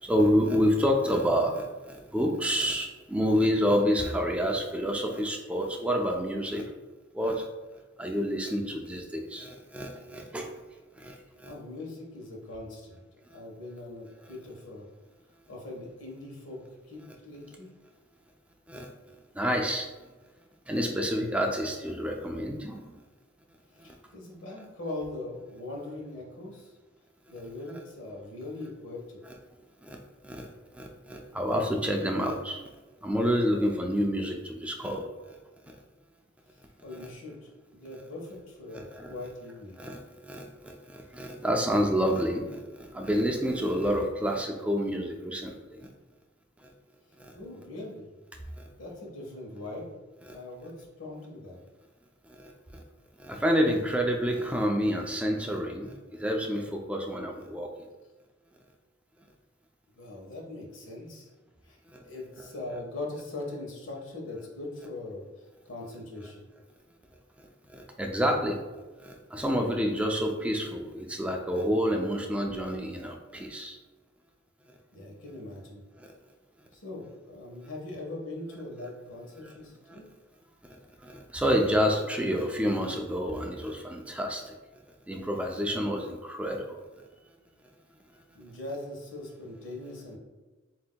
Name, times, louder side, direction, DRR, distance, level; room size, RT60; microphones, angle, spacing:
voice 1, 0.0-6.7 7.1-7.5 8.0-10.5 11.0-11.5 18.7-18.9 19.4-19.9 20.7-22.8 29.8-30.0 30.2-30.5 30.7-32.6 33.0-35.4 38.7-39.1 39.8-45.9 47.2-47.3 48.6-48.7 52.3-52.5 53.2-57.7 61.9-62.0 67.7-68.6 69.0-73.8 76.0-76.1 79.9-80.0 80.6-80.8 81.0-84.5 85.1-86.7, equal, 5° right, 2 dB, 0.4 m, -28 dB
voice 2, 11.5-13.0 13.3-14.9 15.5-16.6 16.9-17.7 23.7-26.7 27.3-29.2 36.8-39.8 47.3-48.1 48.8-49.9 50.3-51.6 59.9-61.3 61.6-61.8 62.0-66.4 74.9-75.8 76.7-80.0 88.3-90.2, left 2 dB, 85° left, -1 dB, 1.2 m, -41 dB
7.6 x 2.8 x 2.2 m, 1.2 s
head